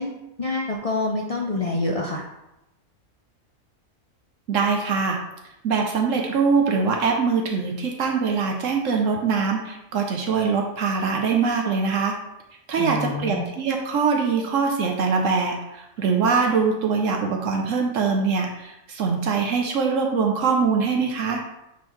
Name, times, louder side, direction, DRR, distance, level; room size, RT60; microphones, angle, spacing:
voice 1, 0.0-2.3 12.8-13.5, left 2 dB, 50° left, 0 dB, 0.4 m, -27 dB
voice 2, 4.5-5.2 5.6-12.1 12.7-21.4, right 5 dB, 70° right, 2 dB, 1.0 m, -23 dB
8.6 x 3.8 x 3.1 m, 0.88 s
omnidirectional pair, 1.4 m